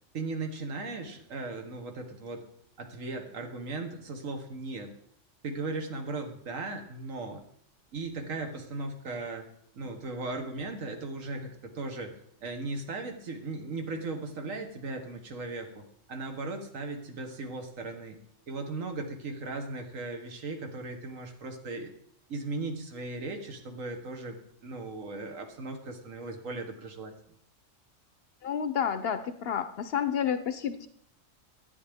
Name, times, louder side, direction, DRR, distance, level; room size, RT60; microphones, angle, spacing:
voice 1, 0.1-2.4 2.8-4.9 5.4-7.4 7.9-9.5 9.7-18.2 18.5-21.9 22.3-27.1, right 3 dB, 85° right, 5 dB, 1.6 m, -37 dB
voice 2, 28.4-30.9, left 8 dB, 60° left, 11 dB, 0.7 m, -30 dB
11.0 x 9.4 x 3.5 m, 0.68 s
omnidirectional pair, 1.3 m